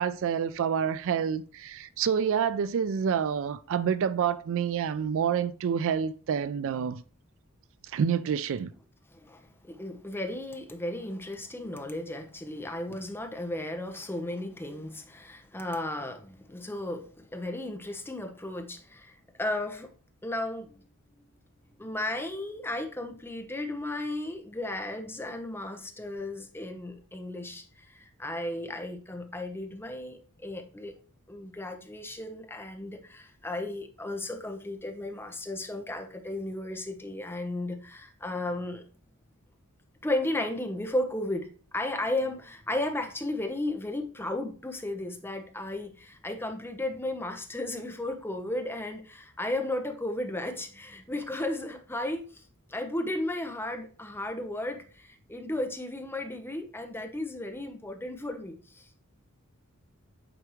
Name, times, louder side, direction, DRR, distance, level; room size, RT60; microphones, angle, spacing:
voice 1, 0.0-7.0 7.9-8.7, right 7 dB, 65° right, 0.3 m, -28 dB
voice 2, 9.1-19.9 20.2-20.9 21.2-21.3 21.8-30.9 31.3-38.8 40.0-52.4 52.7-58.9, left 1 dB, 10° left, 0.9 m, -34 dB
9.0 x 3.5 x 3.1 m
head